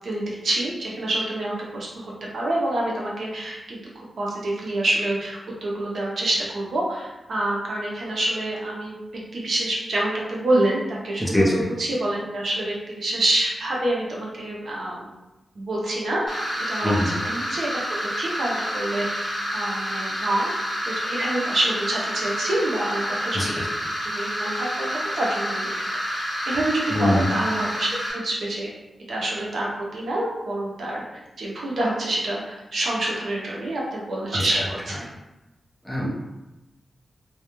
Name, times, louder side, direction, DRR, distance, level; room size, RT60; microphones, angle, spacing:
voice 1, 0.0-1.9 2.3-9.0 9.3-15.1 15.6-20.5 20.8-23.6 24.0-25.7 26.1-28.7 29.1-35.0, right 1 dB, 70° right, -3 dB, 0.6 m, -27 dB
voice 2, 11.2-11.5 16.8-17.1 23.3-23.5 26.9-27.2 34.3-34.6 35.9-36.2, left 1 dB, 5° left, -5 dB, 0.5 m, -22 dB
sound 1, 16.3-28.1, equal, 15° right, 1.2 m, -29 dB
2.3 x 2.1 x 2.9 m, 1.0 s
wide cardioid pair, 135°, 0 cm